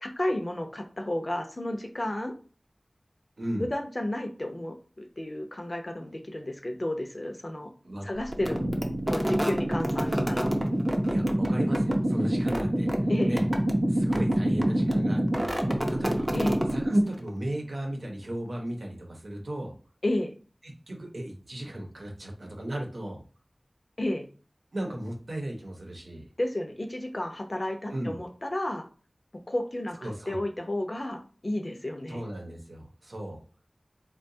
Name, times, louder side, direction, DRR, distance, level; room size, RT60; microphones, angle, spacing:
voice 1, 0.0-2.3 3.6-7.7 8.0-8.6 9.1-10.5 13.1-13.3 16.3-16.6 20.0-20.3 24.0-24.3 26.4-28.9 29.5-32.2, left 1 dB, 45° left, 4 dB, 0.6 m, -32 dB
voice 2, 3.4-3.7 7.8-8.1 11.1-13.5 13.9-16.3 16.7-19.7 20.6-23.2 24.7-26.3 27.9-28.2 30.0-30.4 32.1-33.4, right 1 dB, 80° right, 1 dB, 0.8 m, -36 dB
sound 1, 8.3-17.3, right 1 dB, 25° right, 0.5 m, -26 dB
3.7 x 2.2 x 2.7 m, 0.38 s
wide cardioid pair, 45°, 0 cm